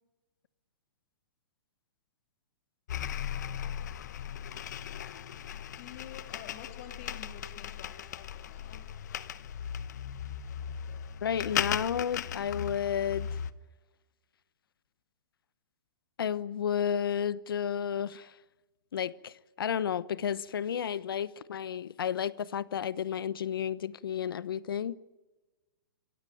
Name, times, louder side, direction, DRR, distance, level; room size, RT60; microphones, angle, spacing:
sound 1, 2.9-13.5, left 9 dB, 55° left, 1.1 m, -37 dB
voice 1, 5.7-8.8, left 8 dB, 35° left, 3.3 m, -49 dB
voice 2, 11.2-13.3 16.2-18.3 18.9-24.9, left 8 dB, 85° left, 1.1 m, -32 dB
26.5 x 16.5 x 9.3 m
hypercardioid pair, 175°, 12 cm